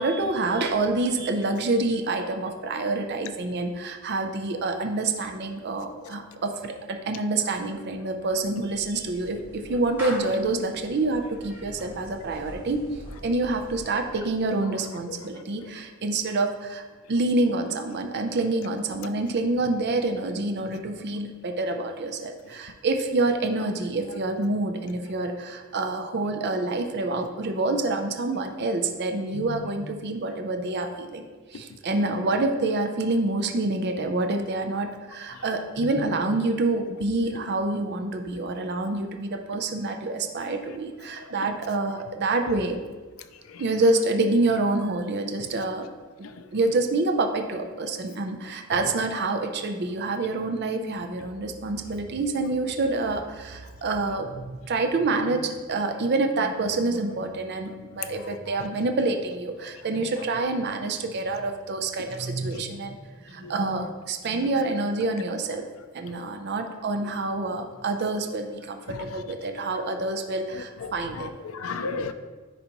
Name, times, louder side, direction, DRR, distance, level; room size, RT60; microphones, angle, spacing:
voice 1, 0.0-12.8 13.2-16.8 17.1-31.2 31.5-42.8 43.6-45.9 46.2-65.7 65.9-71.3, right 2 dB, 55° right, 5 dB, 0.5 m, -27 dB
Clapping / Meow, 8.1-14.5, equal, 10° right, 2.1 m, -43 dB
voice 2, 15.1-15.7 29.3-29.7 35.3-35.4 35.8-36.2 41.2-41.5 43.5-43.6 45.4-45.5 46.2-46.5 57.7-57.8 58.0-58.6 62.5-62.6 63.4-63.5 68.9-69.2 70.5-72.1, left 4 dB, 85° left, 9 dB, 0.5 m, -37 dB
10.0 x 4.0 x 3.0 m, 1.3 s
head